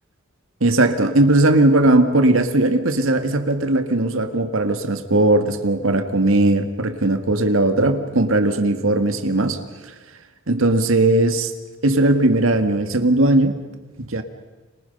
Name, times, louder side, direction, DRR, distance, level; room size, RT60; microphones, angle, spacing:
voice 1, 0.6-9.6 9.8-9.9 10.5-11.5 11.8-13.6 14.0-14.2, right 2 dB, 80° right, 7 dB, 2.0 m, -18 dB
30.0 x 25.5 x 5.5 m, 1.2 s
head